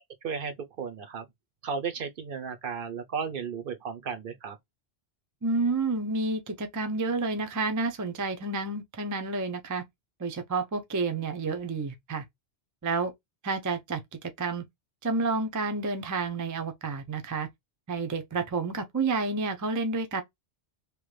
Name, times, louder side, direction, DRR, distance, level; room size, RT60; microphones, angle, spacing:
voice 1, 0.2-1.3 1.6-4.6, right 6 dB, 60° right, 0.7 m, -34 dB
voice 2, 5.4-9.8 10.2-12.2 12.8-13.1 13.4-14.6 15.0-17.5 17.9-20.2, right 3 dB, 25° right, 0.4 m, -30 dB
3.1 x 2.1 x 3.1 m
omnidirectional pair, 1.1 m